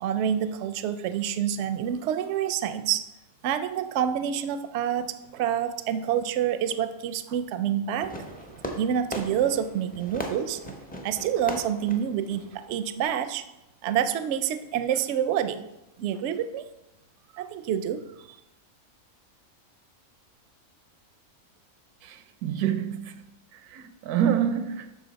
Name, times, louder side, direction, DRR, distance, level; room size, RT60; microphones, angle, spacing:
voice 1, 0.0-3.0 3.4-8.3 8.7-10.7 11.0-13.4 13.8-15.6 16.0-16.6 17.3-18.4, right 9 dB, 65° right, 0.7 m, -27 dB
Fireworks, 8.0-13.0, equal, 10° left, 0.4 m, -39 dB
voice 2, 22.0-23.3 23.5-25.0, right 9 dB, 90° right, 1.2 m, -28 dB
12.0 x 4.0 x 4.0 m
omnidirectional pair, 1.5 m